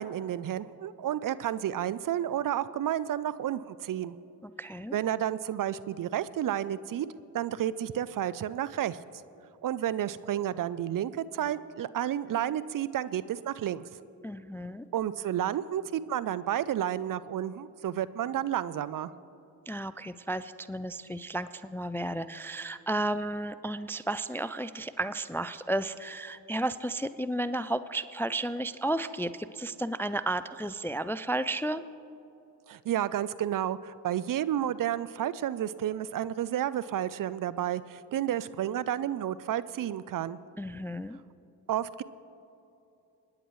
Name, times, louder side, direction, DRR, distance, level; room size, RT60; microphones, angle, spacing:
voice 1, 0.0-4.1 4.9-7.1 7.3-9.0 9.6-13.8 14.9-19.1 32.7-40.4 41.7-42.0, right 11 dB, 50° right, 16 dB, 0.5 m, -31 dB
voice 2, 4.4-5.0 14.2-14.9 19.7-31.8 40.6-41.2, right 1 dB, 5° left, 14 dB, 0.3 m, -33 dB
25.5 x 9.9 x 3.1 m, 2.9 s
hypercardioid pair, 40°, 43 cm